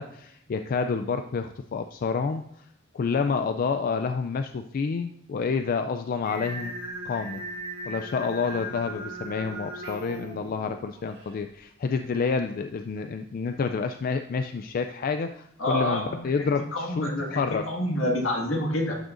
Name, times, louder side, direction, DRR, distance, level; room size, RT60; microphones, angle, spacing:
voice 1, 0.0-2.4 2.9-6.7 7.0-7.4 7.9-17.7, left 5 dB, 45° left, 8 dB, 0.3 m, -29 dB
Singing, 6.2-11.4, right 1 dB, 55° right, 2.1 m, -38 dB
voice 2, 15.6-18.9, left 1 dB, 75° left, 0 dB, 1.8 m, -28 dB
11.5 x 6.3 x 2.6 m, 0.73 s
head